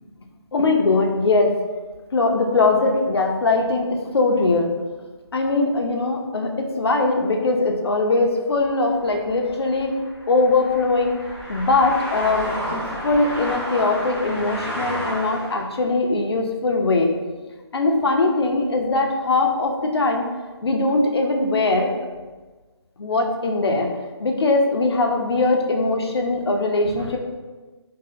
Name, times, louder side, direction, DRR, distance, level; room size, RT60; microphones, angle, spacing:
voice 1, 0.5-1.5 2.1-4.7 5.3-9.9 10.3-11.2 11.5-17.1 17.7-20.2 20.6-21.9 23.0-23.9 24.2-27.2, left 3 dB, 65° left, 2 dB, 0.5 m, -21 dB
sound 1, 8.5-15.7, equal, 10° left, 1.1 m, -31 dB
2.7 x 2.4 x 3.6 m, 1.3 s
figure-of-eight pair, 160°, 14 cm